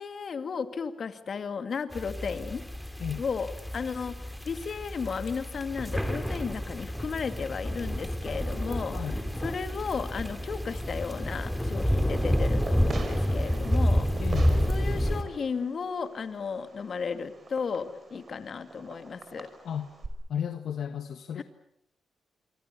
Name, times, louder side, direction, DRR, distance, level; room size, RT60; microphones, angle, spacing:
voice 1, 0.0-2.6 3.2-14.1 14.7-19.5 21.4-21.5, left 5 dB, 55° left, 9 dB, 2.4 m, -34 dB
sound 1, 1.9-15.2, equal, ahead, 3.7 m, -29 dB
Fireworks, 10.1-20.1, right 3 dB, 45° right, 5.6 m, -45 dB
voice 2, 14.2-14.7 19.6-19.9 20.3-21.4, left 8 dB, 75° left, 8 dB, 1.6 m, -33 dB
26.5 x 24.5 x 7.0 m, 0.76 s
cardioid pair, 80°, 0 cm